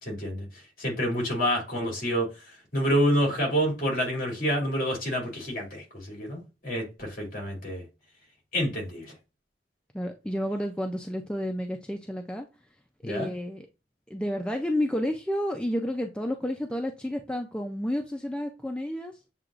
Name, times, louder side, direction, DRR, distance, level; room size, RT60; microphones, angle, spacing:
voice 1, 0.0-0.5 0.8-2.3 2.7-7.8 8.5-9.1 13.0-13.3, equal, 50° left, 2.5 m, -28 dB
voice 2, 9.9-12.5 13.0-13.7 14.1-19.2, equal, 5° left, 0.4 m, -30 dB
7.4 x 2.9 x 2.4 m
head